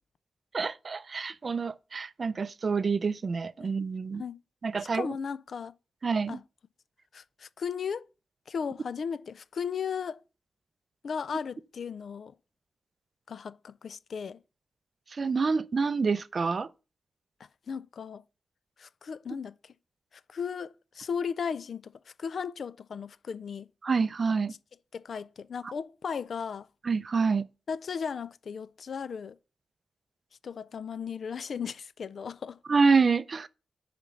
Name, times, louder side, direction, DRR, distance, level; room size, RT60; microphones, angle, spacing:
voice 1, 0.5-4.2 4.6-5.1 6.0-6.4 15.1-16.7 23.8-24.5 26.8-27.5 32.7-33.5, right 4 dB, 40° right, 0.4 m, -27 dB
voice 2, 4.9-5.7 6.3-6.4 7.1-8.1 8.5-10.2 11.0-12.3 13.3-14.4 17.7-18.2 18.8-19.7 20.3-23.7 24.9-26.7 27.7-29.4 30.4-32.6, left 6 dB, 65° left, 0.4 m, -36 dB
6.7 x 5.2 x 7.1 m
wide cardioid pair, 140°, 0 cm